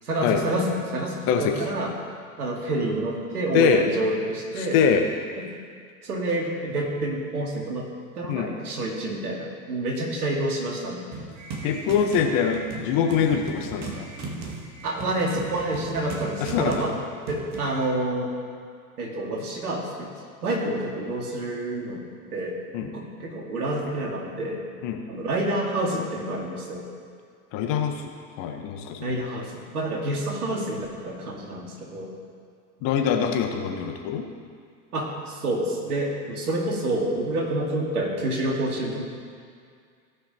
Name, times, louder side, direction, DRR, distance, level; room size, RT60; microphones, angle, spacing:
voice 1, 0.0-1.9 2.4-4.8 5.4-5.5 6.0-7.9 8.1-11.0 14.8-17.0 17.3-18.3 19.0-20.1 20.4-22.0 22.3-22.5 22.8-24.6 25.1-26.8 29.0-32.1 34.9-39.0, right 1 dB, 80° right, 0 dB, 2.2 m, -28 dB
voice 2, 3.5-3.8 4.6-5.0 8.3-8.5 11.6-14.1 16.4-16.9 22.7-22.9 24.8-25.0 27.5-28.0 28.4-29.1 32.8-34.3, left 7 dB, 50° left, 4 dB, 1.4 m, -23 dB
sound 1, 11.1-17.8, right 3 dB, 35° right, 2.0 m, -37 dB
17.5 x 5.9 x 4.4 m, 2.2 s
hypercardioid pair, 90°, 44 cm